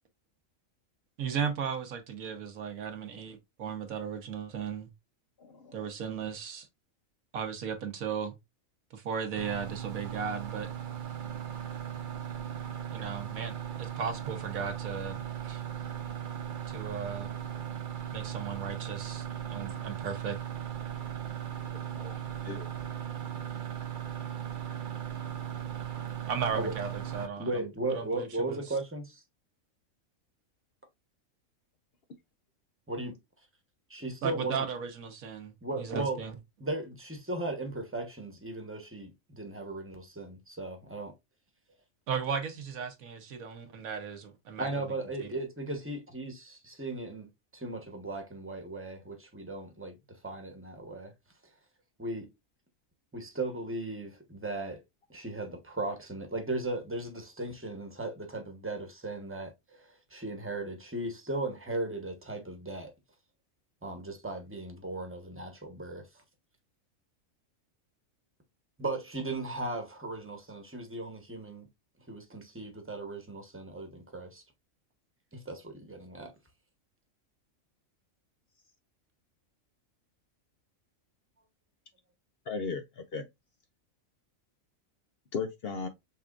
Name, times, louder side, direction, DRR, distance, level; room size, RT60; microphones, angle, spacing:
voice 1, 1.2-4.9 5.7-6.7 7.3-8.3 8.9-10.7 12.9-15.6 16.7-17.3 18.1-20.4 26.3-28.7 34.2-36.3 42.1-44.8 45.2-45.3, right 6 dB, 85° right, 1.4 m, -36 dB
voice 2, 5.4-5.7 21.9-22.7 82.5-83.2 85.3-85.9, left 5 dB, 60° left, 0.7 m, -37 dB
sound 1, 9.3-27.3, right 10 dB, 55° right, 0.6 m, -38 dB
voice 3, 27.4-29.1 32.9-33.1 33.9-34.7 35.6-36.2 36.6-41.1 44.6-51.1 52.0-52.3 53.1-54.8 55.1-59.5 59.8-62.9 63.8-66.1 68.8-71.7 72.1-74.4 75.3-76.3, right 2 dB, 10° right, 0.9 m, -37 dB
5.6 x 3.5 x 2.4 m
omnidirectional pair, 1.4 m